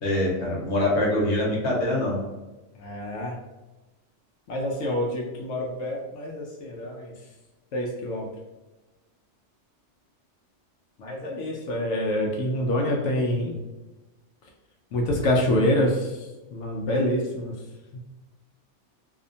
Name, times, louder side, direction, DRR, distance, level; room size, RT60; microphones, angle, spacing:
voice 1, 0.0-2.2, left 1 dB, 65° left, -4 dB, 1.2 m, -24 dB
voice 2, 2.8-3.4 4.5-7.1 7.7-8.3 11.0-13.6 14.9-17.5 17.9-18.0, left 1 dB, 85° left, -1 dB, 0.9 m, -26 dB
2.8 x 2.1 x 2.6 m, 1.1 s
omnidirectional pair, 1.2 m